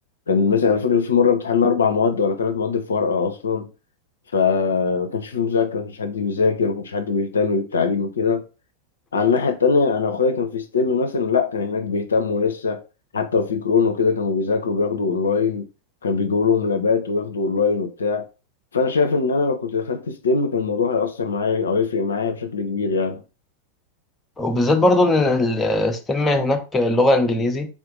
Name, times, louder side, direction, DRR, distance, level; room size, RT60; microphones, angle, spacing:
voice 1, 0.3-3.7 4.3-8.4 9.1-12.8 13.1-15.6 16.0-18.3 18.7-23.2, left 5 dB, 70° left, 0.4 m, -21 dB
voice 2, 24.4-27.7, left 2 dB, 15° left, 0.6 m, -19 dB
3.5 x 2.5 x 3.6 m
figure-of-eight pair, 90°, 0 cm